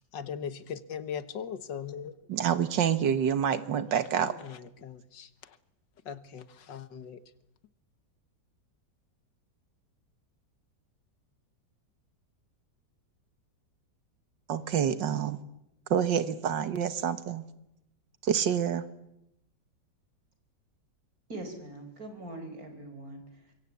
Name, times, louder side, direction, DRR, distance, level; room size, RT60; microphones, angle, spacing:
voice 1, 0.1-2.2 4.2-5.6 6.1-7.2, left 7 dB, 90° left, 14 dB, 2.0 m, -39 dB
voice 2, 2.3-4.3 14.5-15.4 15.9-17.5 18.2-18.8, right 8 dB, 90° right, 12 dB, 2.0 m, -27 dB
voice 3, 21.3-23.5, right 1 dB, 55° right, 7 dB, 4.8 m, -42 dB
25.5 x 23.0 x 8.4 m, 0.85 s
omnidirectional pair, 1.9 m